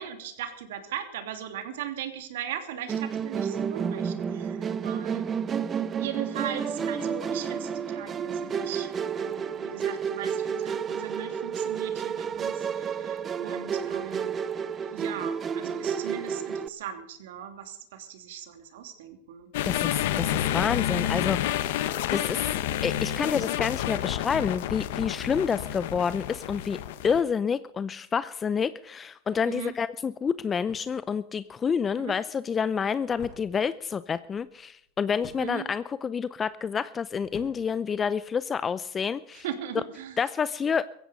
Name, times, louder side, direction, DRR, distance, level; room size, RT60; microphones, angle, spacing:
voice 1, 0.0-5.3 6.0-14.3 14.9-19.5 29.5-29.7 32.0-32.2 35.4-35.6 39.3-40.2, right 9 dB, 75° right, 8 dB, 2.9 m, -38 dB
Musical instrument, 2.9-16.7, right 7 dB, 25° right, 0.9 m, -31 dB
sound 1, 19.5-27.2, left 12 dB, 70° left, 1.3 m, -29 dB
voice 2, 19.6-21.8 22.1-22.5 22.8-26.8 27.0-39.4 40.2-40.8, left 6 dB, 20° left, 15 dB, 0.6 m, -28 dB
sound 2, 29.9-38.7, left 6 dB, 40° left, 5.8 m, -53 dB
16.0 x 15.5 x 5.4 m, 0.71 s
hypercardioid pair, 120°, 0 cm